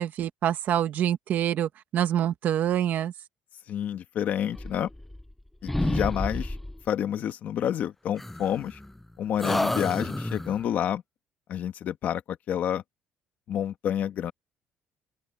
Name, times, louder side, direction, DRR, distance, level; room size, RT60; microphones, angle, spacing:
voice 1, 0.0-3.1, right 10 dB, 45° right, 1.5 m, -26 dB
voice 2, 3.7-4.9 5.6-6.5 6.9-8.8 9.2-11.0 11.5-12.8 13.5-14.3, left 10 dB, 45° left, 1.7 m, -29 dB
sound 1, 4.6-5.4 5.7-6.8 8.2-9.0 9.4-10.6, left 1 dB, 5° left, 0.3 m, -30 dB
open air
cardioid pair, 175°, 4 cm